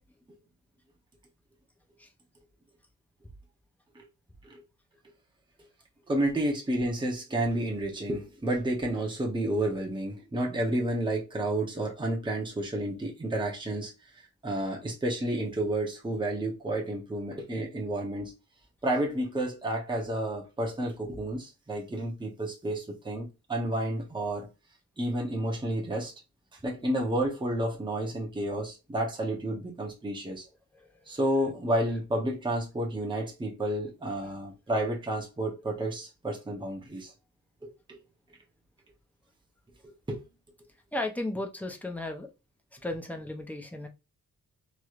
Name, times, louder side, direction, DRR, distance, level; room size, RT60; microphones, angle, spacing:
voice 1, 6.1-13.9 14.4-18.3 18.8-24.5 25.0-26.1 26.6-30.4 31.1-37.1 40.1-40.2, right 1 dB, 15° right, 0.8 m, -30 dB
voice 2, 30.7-31.1 34.2-34.3 40.9-42.3 42.8-43.9, left 2 dB, 5° left, 0.5 m, -35 dB
3.1 x 2.9 x 2.4 m
wide cardioid pair, 145°, 34 cm